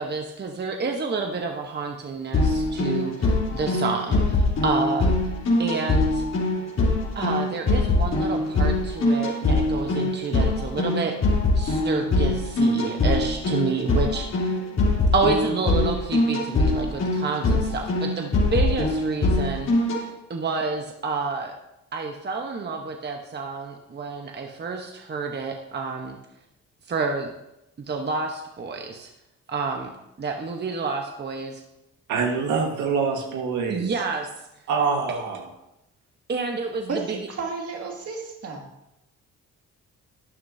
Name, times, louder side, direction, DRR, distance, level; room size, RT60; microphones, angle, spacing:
voice 1, 0.0-5.1 5.6-6.2 7.1-11.2 11.5-14.5 15.1-19.7 20.3-21.5 21.9-26.2 26.9-27.3 27.9-29.1 29.5-29.9 30.2-31.6 33.7-34.3 36.3-37.3, right 4 dB, 35° right, 2 dB, 1.1 m, -29 dB
sound 1, 2.3-20.0, left 2 dB, 60° left, 3.3 m, -23 dB
voice 2, 32.1-33.9 34.7-35.4, right 5 dB, 80° right, 1 dB, 1.7 m, -25 dB
voice 3, 36.9-38.7, right 4 dB, 55° right, 1 dB, 2.2 m, -32 dB
12.0 x 9.4 x 2.8 m, 0.88 s
cardioid pair, 90°, 30 cm